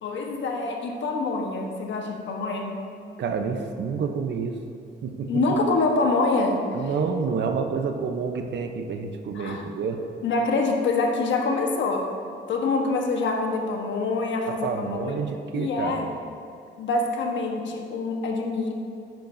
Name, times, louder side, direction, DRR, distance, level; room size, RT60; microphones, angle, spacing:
voice 1, 0.0-2.8 5.3-6.6 9.3-9.6 10.2-12.1 12.5-15.1 15.5-16.1 16.8-18.7, left 3 dB, 70° left, 2 dB, 1.3 m, -25 dB
voice 2, 3.2-4.6 5.0-5.3 6.7-10.0 14.5-16.1, right 5 dB, 60° right, 6 dB, 0.8 m, -28 dB
10.5 x 9.2 x 2.7 m, 2.5 s
cardioid pair, 90°, 20 cm